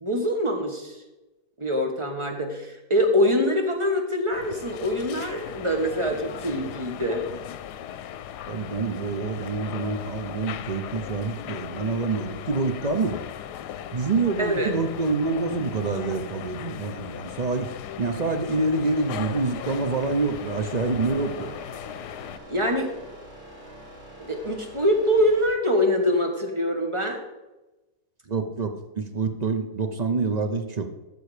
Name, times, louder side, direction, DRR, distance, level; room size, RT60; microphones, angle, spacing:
voice 1, 0.0-1.0 1.6-7.2 14.4-14.7 22.5-22.9 24.2-27.2, equal, 20° right, 3 dB, 1.3 m, -24 dB
sound 1, 4.3-22.4, left 10 dB, 90° left, 1.2 m, -38 dB
voice 2, 8.5-13.2 13.9-17.7 18.0-21.5 28.3-30.9, right 3 dB, 45° right, 7 dB, 0.5 m, -27 dB
sound 2, 18.9-25.5, right 1 dB, 90° right, 4.5 m, -45 dB
13.5 x 6.4 x 5.0 m, 1.1 s
omnidirectional pair, 1.7 m